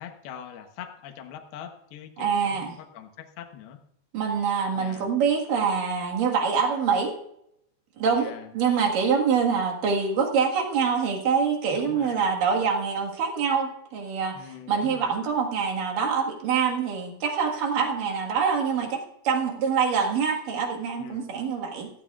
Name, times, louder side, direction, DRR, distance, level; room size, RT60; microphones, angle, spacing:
voice 1, 0.0-3.8 4.7-5.1 8.1-8.5 11.7-12.3 14.3-15.1 21.0-21.4, left 9 dB, 70° left, 7 dB, 2.7 m, -43 dB
voice 2, 2.2-2.7 4.1-7.1 8.0-21.9, right 6 dB, 55° right, 1 dB, 2.8 m, -25 dB
16.5 x 14.5 x 2.4 m, 0.76 s
omnidirectional pair, 5.5 m